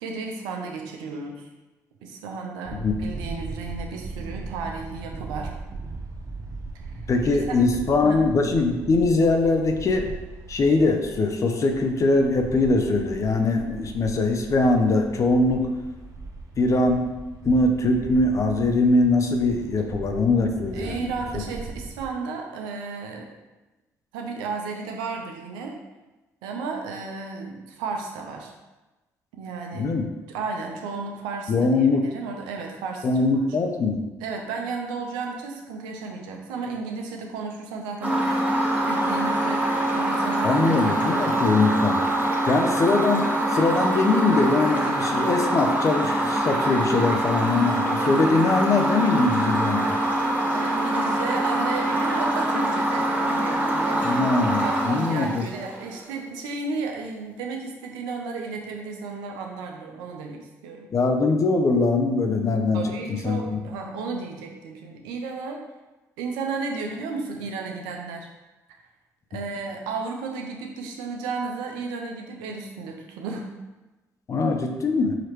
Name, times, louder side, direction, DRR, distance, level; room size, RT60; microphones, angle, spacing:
voice 1, 0.0-1.5 2.0-5.6 7.3-7.6 8.0-8.2 20.7-23.3 24.1-25.8 26.4-28.5 29.3-29.9 30.3-33.1 33.3-33.8 34.2-41.4 50.5-54.1 54.6-60.9 62.7-65.6 66.2-68.3 69.3-73.5, right 4 dB, 85° right, 2 dB, 0.6 m, -33 dB
sound 1, 2.6-22.1, right 3 dB, 50° right, 0.7 m, -39 dB
voice 2, 7.1-10.1 10.5-15.7 16.6-17.1 17.4-21.4 29.7-30.1 31.5-32.0 33.0-34.0 40.4-42.0 42.5-43.2 43.5-50.0 54.0-55.4 60.9-62.8 63.1-63.6 74.3-75.1, left 3 dB, 45° left, 5 dB, 0.6 m, -22 dB
sound 2, 38.0-56.0, right 1 dB, 20° right, 1.1 m, -24 dB
4.9 x 2.9 x 3.1 m, 1.1 s
hypercardioid pair, 55°, 7 cm